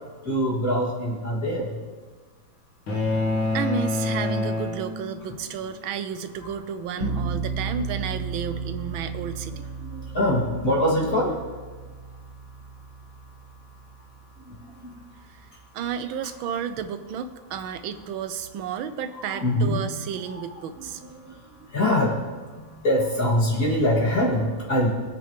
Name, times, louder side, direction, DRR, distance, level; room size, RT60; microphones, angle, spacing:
voice 1, 0.2-1.8 7.0-7.3 9.8-11.4 14.4-15.0 19.2-19.8 21.0-22.2 22.5-24.9, left 1 dB, 40° left, -5 dB, 3.3 m, -24 dB
sound 1, 2.9-5.4, left 2 dB, 70° left, 2.4 m, -26 dB
voice 2, 3.5-9.7 15.3-15.5 15.7-21.0, right 7 dB, 85° right, 10 dB, 1.5 m, -32 dB
sound 2, 7.0-15.9, right 4 dB, 50° right, 1.0 m, -35 dB
22.0 x 8.4 x 3.4 m, 1.4 s
omnidirectional pair, 2.1 m